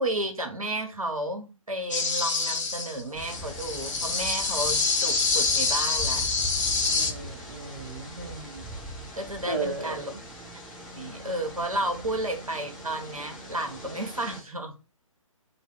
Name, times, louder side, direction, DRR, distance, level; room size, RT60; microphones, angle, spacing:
voice 1, 0.0-6.2 8.2-8.6 8.9-10.1 10.9-14.7, right 1 dB, 90° right, 4 dB, 0.6 m, -32 dB
sound 1, 1.9-7.1, left 4 dB, 60° left, 0.7 m, -26 dB
sound 2, 3.1-14.4, equal, ahead, 0.5 m, -41 dB
voice 2, 6.9-8.2 9.5-10.2, right 3 dB, 35° right, 0 dB, 0.7 m, -35 dB
2.2 x 2.1 x 3.3 m, 0.32 s
figure-of-eight pair, 135°, 17 cm